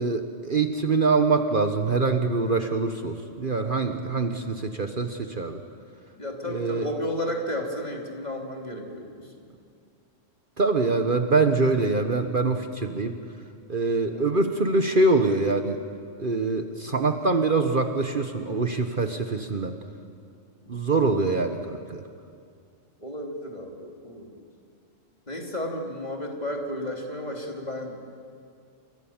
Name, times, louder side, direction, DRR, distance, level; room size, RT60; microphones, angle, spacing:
voice 1, 0.0-5.6 6.5-6.9 10.6-13.1 13.7-15.8 16.2-19.8 20.7-22.0, right 3 dB, 45° right, 6 dB, 1.3 m, -24 dB
voice 2, 6.1-9.4 14.1-14.3 20.6-20.8 23.0-24.4 25.3-28.1, left 1 dB, 35° left, 1 dB, 3.3 m, -33 dB
29.0 x 24.5 x 7.3 m, 2.3 s
omnidirectional pair, 1.3 m